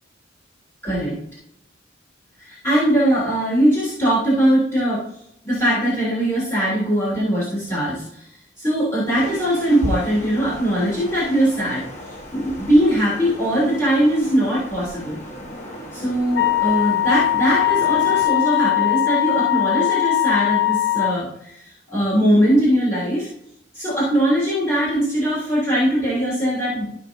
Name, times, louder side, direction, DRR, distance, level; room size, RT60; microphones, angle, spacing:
voice 1, 0.8-1.2 2.4-5.0 5.4-8.3 8.6-11.8 12.3-15.2 15.9-23.3 23.7-26.9, equal, 15° left, -10 dB, 3.3 m, -20 dB
sound 1, 9.2-18.3, equal, 35° left, 1.4 m, -37 dB
Wind instrument woodwind instrument, 16.3-21.2, left 14 dB, 55° left, 0.6 m, -20 dB
14.5 x 5.3 x 2.7 m, 0.74 s
head